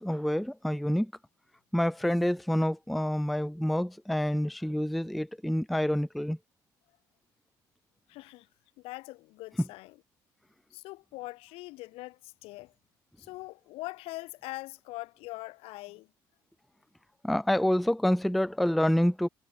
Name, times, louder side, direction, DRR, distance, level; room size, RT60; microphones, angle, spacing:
voice 1, 0.0-1.1 1.7-6.4 17.2-19.3, left 1 dB, ahead, 0.3 m, -27 dB
voice 2, 8.1-8.5 8.8-10.0 10.7-12.7 13.2-16.1, left 21 dB, 75° left, 1.0 m, -42 dB
hypercardioid pair, 60°, 10 cm